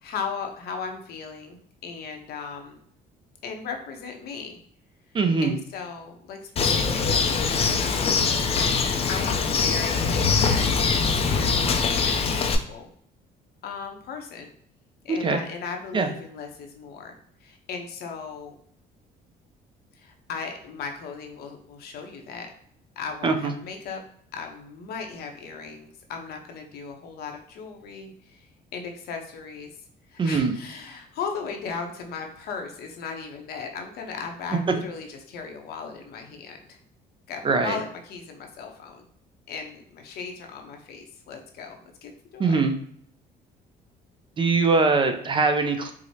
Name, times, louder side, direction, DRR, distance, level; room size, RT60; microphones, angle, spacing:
voice 1, 0.0-2.8 3.4-4.6 5.4-8.5 9.1-11.7 12.0-12.9 13.6-14.5 15.0-17.2 17.4-18.5 19.9-22.5 23.0-24.0 24.3-28.5 28.7-29.7 30.1-36.8 37.3-39.0 39.5-42.6, left 5 dB, 70° left, 4 dB, 0.7 m, -37 dB
voice 2, 5.1-5.5 15.1-15.4 15.9-16.1 23.2-23.5 30.2-30.6 37.4-37.8 42.4-42.7 44.4-45.9, right 4 dB, 30° right, 6 dB, 0.4 m, -22 dB
Bird, 6.6-12.6, left 5 dB, 35° left, 0.4 m, -23 dB
4.7 x 2.0 x 2.7 m, 0.63 s
cardioid pair, 110°, 17 cm